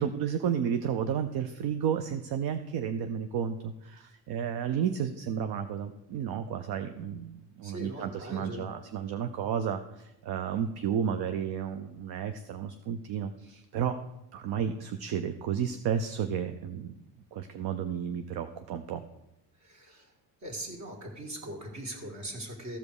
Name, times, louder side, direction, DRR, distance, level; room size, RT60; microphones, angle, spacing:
voice 1, 0.0-14.0 14.3-16.9 17.3-19.0, right 8 dB, 60° right, 8 dB, 0.7 m, -32 dB
voice 2, 7.6-8.7 19.6-20.1 20.4-22.8, right 1 dB, 40° right, 2 dB, 2.3 m, -40 dB
14.5 x 5.2 x 4.8 m, 0.88 s
cardioid pair, 110°, 42 cm